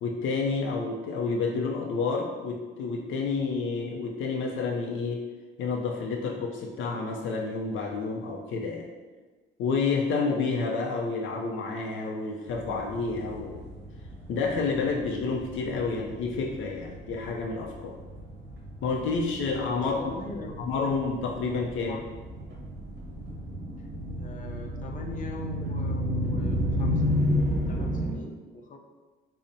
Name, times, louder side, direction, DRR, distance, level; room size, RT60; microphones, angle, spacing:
voice 1, 0.0-5.2 5.6-8.9 9.6-13.6 14.3-18.0 18.8-20.1 20.6-22.0, left 4 dB, 85° left, 0 dB, 0.4 m, -29 dB
sound 1, 12.5-28.1, left 1 dB, 60° right, 0.8 m, -33 dB
voice 2, 19.7-21.0 21.8-22.0 24.2-27.0 27.7-28.8, left 2 dB, 40° left, 1 dB, 0.6 m, -42 dB
5.4 x 2.0 x 2.6 m, 1.3 s
cardioid pair, 90°, 20 cm